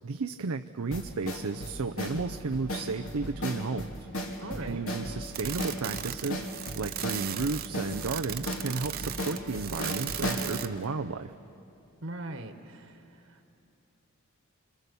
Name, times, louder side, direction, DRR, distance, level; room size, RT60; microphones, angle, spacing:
voice 1, 0.0-3.9 4.6-6.4 6.8-11.3, right 4 dB, 85° right, 6 dB, 0.6 m, -33 dB
sound 1, 0.9-10.5, equal, 75° left, 3.1 m, -35 dB
voice 2, 4.4-4.8 12.0-13.5, right 2 dB, 70° right, 5 dB, 1.6 m, -40 dB
sound 2, 5.3-10.8, right 11 dB, 45° right, 0.8 m, -37 dB
26.5 x 26.0 x 7.0 m, 2.7 s
head